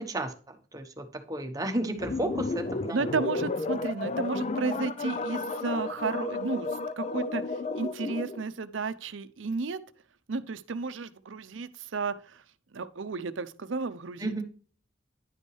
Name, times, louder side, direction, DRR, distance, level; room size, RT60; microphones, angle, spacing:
voice 1, 0.0-3.0 14.2-14.4, right 1 dB, 20° right, 1.0 m, -33 dB
sound 1, 2.0-8.4, left 3 dB, 35° left, 0.5 m, -32 dB
voice 2, 2.9-6.7 7.0-9.8 10.3-12.4 12.7-14.4, right 4 dB, 80° right, 0.6 m, -33 dB
10.5 x 5.3 x 3.2 m
head